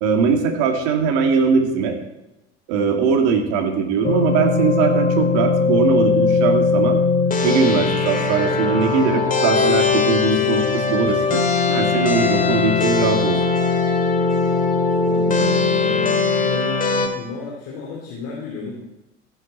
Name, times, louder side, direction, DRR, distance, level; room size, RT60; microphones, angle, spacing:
voice 1, 0.0-2.0 2.7-7.0 7.4-13.4, right 5 dB, 55° right, 4 dB, 2.1 m, -20 dB
sound 1, 4.0-17.1, left 4 dB, 25° left, 2.0 m, -19 dB
voice 2, 14.9-18.8, left 4 dB, 45° left, -4 dB, 3.0 m, -33 dB
15.0 x 8.9 x 4.3 m, 0.95 s
figure-of-eight pair, 75°, 35 cm